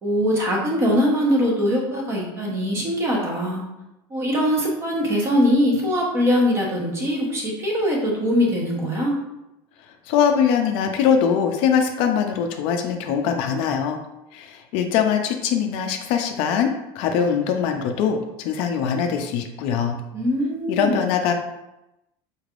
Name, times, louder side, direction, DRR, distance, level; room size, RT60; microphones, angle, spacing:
voice 1, 0.0-3.6 4.1-9.1 20.1-21.0, equal, 25° right, -2 dB, 0.9 m, -22 dB
voice 2, 10.1-14.0 14.3-20.0 20.7-21.3, left 7 dB, 55° left, 5 dB, 0.4 m, -22 dB
4.4 x 3.3 x 2.4 m, 0.92 s
cardioid pair, 165°, 11 cm